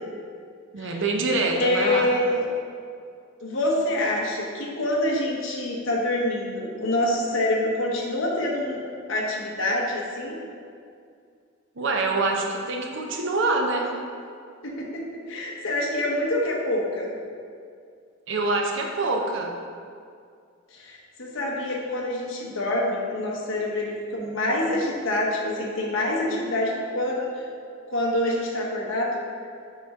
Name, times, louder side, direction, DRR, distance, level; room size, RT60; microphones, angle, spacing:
voice 1, 0.7-2.1 11.8-13.9 18.3-19.5, right 3 dB, 65° right, 1 dB, 0.7 m, -25 dB
voice 2, 1.5-2.4 3.4-8.8 9.1-10.4 14.6-17.1 20.7-27.3 27.9-29.1, left 1 dB, 70° left, -2 dB, 1.1 m, -26 dB
6.5 x 4.3 x 3.6 m, 2.3 s
head